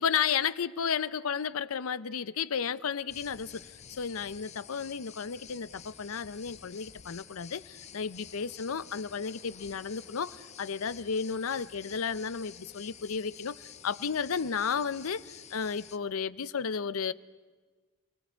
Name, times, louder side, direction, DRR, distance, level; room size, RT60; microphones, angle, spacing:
voice 1, 0.0-17.1, left 6 dB, 75° left, 0.6 m, -33 dB
sound 1, 3.1-16.0, left 8 dB, 30° left, 0.6 m, -50 dB
29.5 x 19.5 x 4.5 m
head